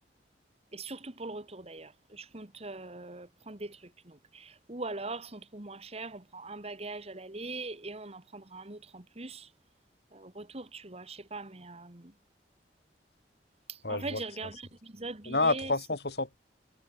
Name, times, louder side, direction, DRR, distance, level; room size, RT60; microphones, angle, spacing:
voice 1, 0.7-3.8 4.1-9.5 10.1-12.1 13.7-15.7, right 3 dB, 35° right, 1.9 m, -41 dB
voice 2, 13.8-14.2 15.2-16.4, left 2 dB, 65° left, 5.1 m, -29 dB
head